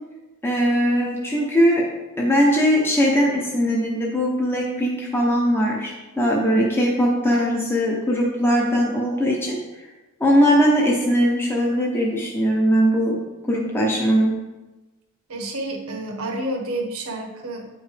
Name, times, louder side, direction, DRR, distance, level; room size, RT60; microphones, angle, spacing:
voice 1, 0.4-1.8 2.2-5.9 6.2-9.6 10.2-13.1 13.5-14.3, equal, 10° left, -3 dB, 0.9 m, -20 dB
voice 2, 6.2-6.6 7.4-7.5 15.3-17.7, right 1 dB, 70° right, 2 dB, 1.2 m, -30 dB
9.3 x 5.2 x 3.4 m, 1.1 s
head